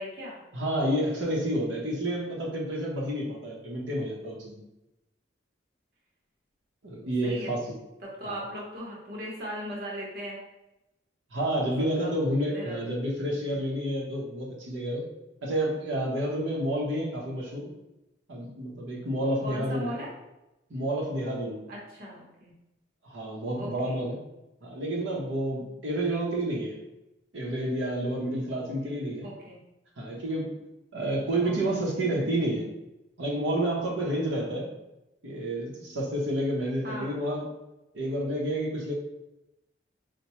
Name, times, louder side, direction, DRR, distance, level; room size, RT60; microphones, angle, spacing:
voice 1, 0.0-0.4 7.2-7.5 8.0-10.4 11.6-12.1 12.5-12.9 13.3-13.6 19.4-20.1 21.7-22.5 23.6-24.0 29.2-29.6 31.4-32.1 36.8-37.2, equal, 50° right, -3 dB, 0.8 m, -39 dB
voice 2, 0.5-4.6 6.8-7.6 8.2-8.4 11.3-15.0 15.4-17.7 18.3-19.9 20.7-21.6 23.0-24.2 24.6-26.8 27.3-29.3 30.0-30.5 30.9-32.7 33.2-34.7 35.2-37.5 37.9-38.9, right 1 dB, 85° right, -3 dB, 0.8 m, -29 dB
4.4 x 2.1 x 2.9 m, 0.94 s
head